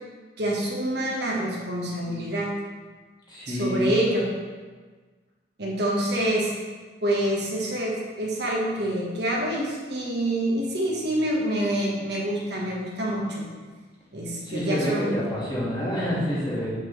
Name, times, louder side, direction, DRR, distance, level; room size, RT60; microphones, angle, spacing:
voice 1, 0.4-2.5 3.5-4.2 5.6-6.5 7.0-13.5 14.1-15.2, right 1 dB, 60° right, -3 dB, 1.4 m, -26 dB
voice 2, 3.3-4.0 14.4-16.7, equal, 25° left, -7 dB, 1.9 m, -28 dB
7.3 x 5.8 x 3.3 m, 1.4 s
head